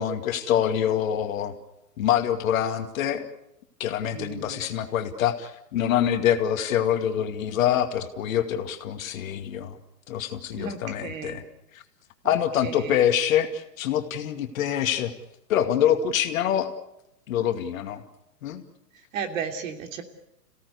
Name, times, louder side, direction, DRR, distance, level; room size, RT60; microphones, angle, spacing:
voice 1, 0.0-1.5 2.0-3.3 3.8-9.8 10.1-11.4 11.7-11.8 12.2-15.1 15.5-16.7 17.3-18.0 18.4-18.6, left 10 dB, 55° left, 7 dB, 2.4 m, -25 dB
voice 2, 4.1-4.7 10.5-11.4 12.2-13.0 19.1-20.0, right 6 dB, 55° right, 6 dB, 3.2 m, -35 dB
27.0 x 17.0 x 8.2 m, 0.84 s
hypercardioid pair, 135°, 49 cm